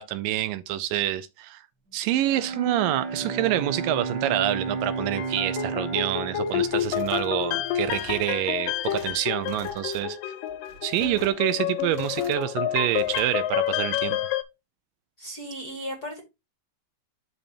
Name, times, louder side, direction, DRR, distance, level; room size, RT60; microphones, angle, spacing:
voice 1, 0.0-1.6 1.9-10.2 10.8-14.2, right 13 dB, 80° right, 2.1 m, -27 dB
Bowed string instrument, 2.1-8.1, right 4 dB, 55° right, 1.2 m, -33 dB
sound 1, 4.9-14.4, left 11 dB, 80° left, 2.2 m, -29 dB
sound 2, 6.6-7.3 7.6-8.2 8.7-9.1 9.4-10.0 10.5-11.4 11.8-12.5 12.9-13.3, right 2 dB, 40° right, 3.4 m, -46 dB
voice 2, 15.2-16.2, equal, 40° left, 1.5 m, -35 dB
12.0 x 4.1 x 2.7 m
omnidirectional pair, 4.1 m